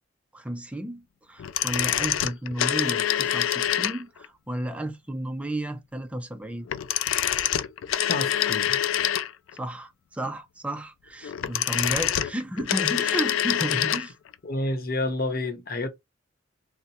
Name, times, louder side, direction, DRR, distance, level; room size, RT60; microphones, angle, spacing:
voice 1, 0.3-6.7 9.5-14.1, right 1 dB, 5° right, 0.4 m, -33 dB
sound 1, 1.4-4.3 6.7-9.6 11.2-14.1 14.3-14.4, left 11 dB, 90° left, 0.3 m, -26 dB
voice 2, 8.1-8.8 14.4-15.9, left 2 dB, 50° left, 0.8 m, -29 dB
2.6 x 2.1 x 4.0 m
head